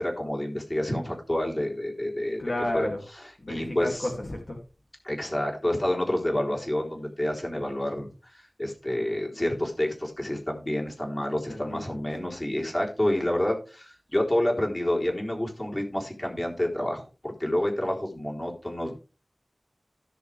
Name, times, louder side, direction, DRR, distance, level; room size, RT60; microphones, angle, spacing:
voice 1, 0.0-2.4 2.7-2.9 3.5-4.1 5.0-18.9, left 1 dB, 30° left, -1 dB, 3.9 m, -28 dB
voice 2, 2.4-3.0 3.4-4.6 11.5-11.8 12.2-12.3 18.8-18.9, left 1 dB, 60° left, 0 dB, 2.7 m, -32 dB
16.5 x 6.9 x 3.4 m, 0.33 s
wide cardioid pair, 60°, 0 cm